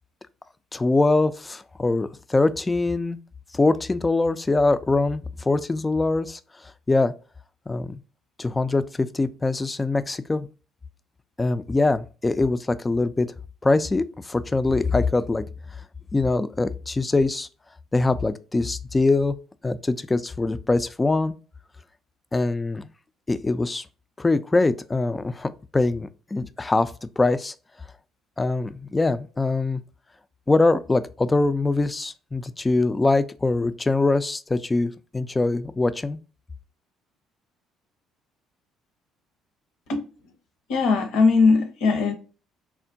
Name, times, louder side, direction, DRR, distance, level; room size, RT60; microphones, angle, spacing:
voice 1, 0.7-3.2 3.5-6.4 6.9-7.1 7.7-8.0 8.4-10.5 11.4-13.3 13.6-15.4 16.1-17.5 17.9-19.4 19.6-21.4 22.3-22.9 23.3-23.9 24.2-27.5 28.4-29.8 30.5-36.2, left 3 dB, 20° left, 0.3 m, -23 dB
voice 2, 40.7-42.1, left 4 dB, 65° left, 0.7 m, -19 dB
3.5 x 2.1 x 2.6 m
hypercardioid pair, 55°, 0 cm